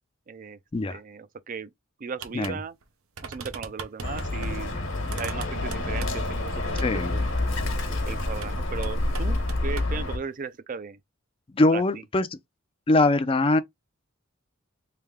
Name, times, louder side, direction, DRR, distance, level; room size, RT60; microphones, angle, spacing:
voice 1, 0.3-0.6 0.9-1.7 2.0-2.7 3.2-7.2 8.1-11.0 11.7-11.8, right 5 dB, 40° right, 0.4 m, -37 dB
sound 1, 2.2-2.6 2.8-2.9 3.2-4.5 5.1-6.3 6.8-6.9 8.3-8.6 8.8-9.9, right 5 dB, 85° right, 0.7 m, -39 dB
Bird, 4.0-10.2, left 2 dB, 65° left, 1.2 m, -28 dB
voice 2, 6.8-7.1 11.5-12.3 12.9-13.6, left 2 dB, 25° left, 0.4 m, -22 dB
3.4 x 2.7 x 3.5 m
head